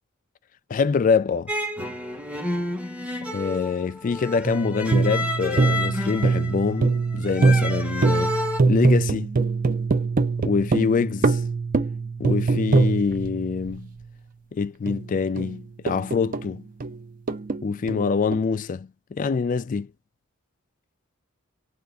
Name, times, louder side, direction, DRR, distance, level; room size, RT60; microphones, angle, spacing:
voice 1, 0.7-1.5 3.3-8.4 8.7-9.3 10.4-11.4 12.2-13.9 14.5-16.6 17.6-19.9, left 5 dB, 40° left, 0.3 m, -25 dB
sound 1, 1.5-8.6, left 1 dB, 5° right, 0.7 m, -30 dB
sound 2, 4.4-14.1 14.9-16.6 16.8-18.4, right 4 dB, 40° right, 0.5 m, -23 dB
3.4 x 2.5 x 3.7 m
head